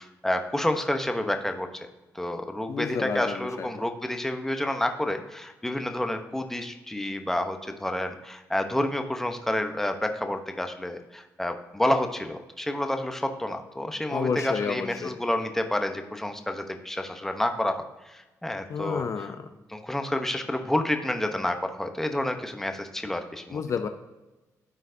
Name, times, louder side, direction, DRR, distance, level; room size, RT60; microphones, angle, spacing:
voice 1, 0.0-1.7 2.1-19.3 19.7-23.6, left 1 dB, 5° left, 6 dB, 0.8 m, -29 dB
voice 2, 2.7-3.7 14.1-15.2 18.7-19.5 23.5-23.9, left 6 dB, 50° left, 8 dB, 0.5 m, -30 dB
13.5 x 4.5 x 2.7 m, 1.1 s
cardioid pair, 95°, 7 cm